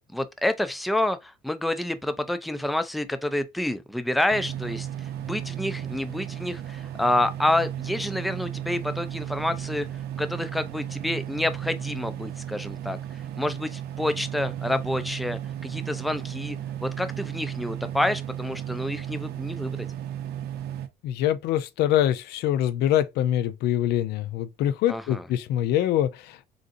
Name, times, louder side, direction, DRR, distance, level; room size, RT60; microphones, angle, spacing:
voice 1, 0.0-4.9 5.2-9.9 10.2-19.9 24.9-25.3, left 1 dB, ahead, 0.3 m, -28 dB
sound 1, 4.3-20.9, right 11 dB, 70° right, 0.5 m, -34 dB
voice 2, 21.0-26.5, left 11 dB, 75° left, 0.4 m, -24 dB
3.6 x 2.6 x 2.5 m
cardioid pair, 110°, 17 cm